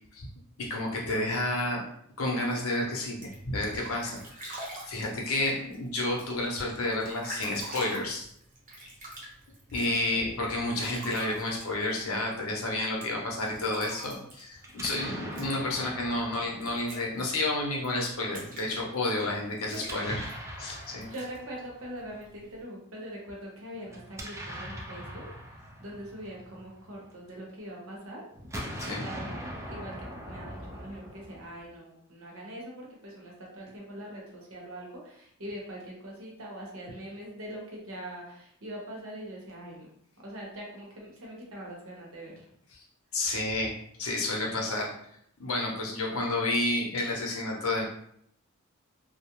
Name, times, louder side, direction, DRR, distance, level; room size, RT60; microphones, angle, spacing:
voice 1, 0.6-1.8 2.2-8.3 9.7-20.2 20.6-21.1 28.8-29.0 42.7-42.8 43.1-43.7 44.0-44.9 45.4-47.8, left 2 dB, 70° left, -2 dB, 0.7 m, -30 dB
sound 1, 3.0-22.6, right 1 dB, 40° right, 0.7 m, -47 dB
Explosion, 14.6-17.7 19.7-22.0 23.9-27.3 28.3-31.7, equal, 15° right, 0.3 m, -42 dB
voice 2, 19.3-19.8 20.6-28.2 28.8-39.9 40.2-42.4, right 1 dB, 70° right, -2 dB, 0.8 m, -43 dB
2.3 x 2.1 x 2.9 m, 0.69 s
head